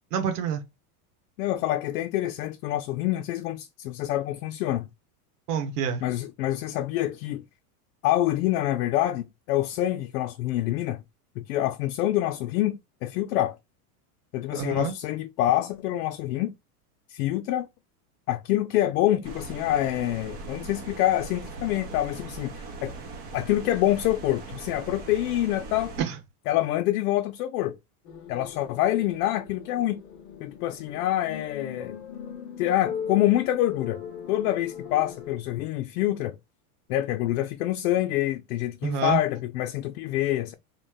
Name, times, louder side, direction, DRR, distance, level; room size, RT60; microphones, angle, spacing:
voice 1, 0.1-0.6 5.5-6.0 14.5-14.9 26.0-26.2 38.8-39.2, right 7 dB, 90° right, 1.2 m, -27 dB
voice 2, 1.4-4.9 6.0-7.4 8.0-11.0 11.4-13.6 14.3-16.5 17.1-17.7 18.3-22.9 23.3-25.9 26.5-27.8 28.3-30.0 30.4-32.0 32.6-34.0 34.3-36.4 36.9-40.5, left 14 dB, 80° left, 0.6 m, -26 dB
sound 1, 19.2-26.0, right 3 dB, 30° right, 0.6 m, -40 dB
sound 2, 28.0-35.3, left 7 dB, 35° left, 0.6 m, -39 dB
3.1 x 2.1 x 3.5 m
supercardioid pair, 170°, 45 cm